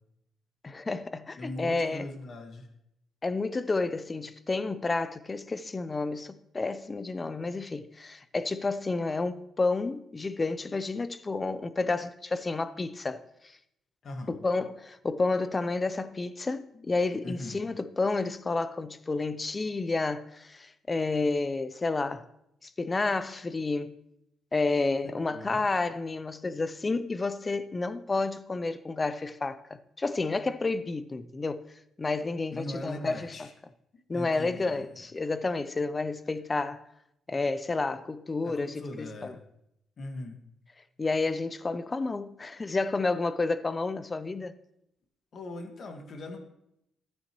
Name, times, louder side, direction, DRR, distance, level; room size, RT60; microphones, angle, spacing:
voice 1, 0.6-2.1 3.2-13.6 14.3-22.2 22.6-23.9 24.5-31.6 32.0-33.5 34.1-36.8 37.3-39.3 41.0-44.5, left 3 dB, 25° left, 0.6 m, -30 dB
voice 2, 1.3-2.7 14.0-14.3 17.2-17.6 25.3-25.6 32.5-33.5 34.1-35.0 38.4-39.4 40.0-40.4 45.3-46.5, left 1 dB, 50° left, 1.7 m, -40 dB
13.5 x 9.4 x 3.1 m
cardioid pair, 90°, 0 cm